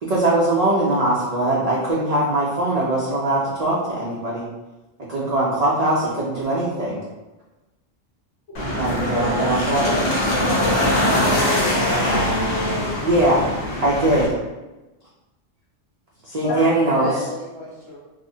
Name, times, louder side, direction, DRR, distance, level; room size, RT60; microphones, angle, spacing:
voice 1, 0.0-4.4 5.1-7.0 8.7-10.0 13.0-13.4 13.8-14.3 16.2-17.1, right 1 dB, 75° right, -6 dB, 0.3 m, -21 dB
sound 1, 8.5-14.3, left 1 dB, 55° left, 0.9 m, -22 dB
voice 2, 8.8-12.8 16.5-17.3, left 1 dB, 80° left, -2 dB, 1.1 m, -29 dB
voice 3, 16.3-18.0, left 1 dB, 25° right, -8 dB, 0.8 m, -31 dB
3.2 x 2.0 x 2.6 m, 1.1 s
omnidirectional pair, 1.3 m